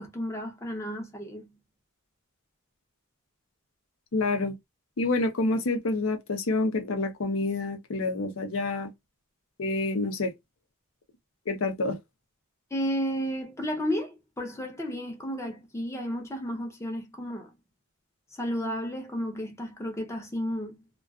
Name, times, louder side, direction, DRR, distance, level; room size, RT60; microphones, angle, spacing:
voice 1, 0.0-1.5 12.7-17.5 18.4-20.8, equal, 15° left, 0.6 m, -32 dB
voice 2, 4.1-4.5 5.0-8.9 9.6-10.3 11.5-12.0, left 2 dB, 65° left, 0.6 m, -28 dB
2.3 x 2.3 x 2.2 m
head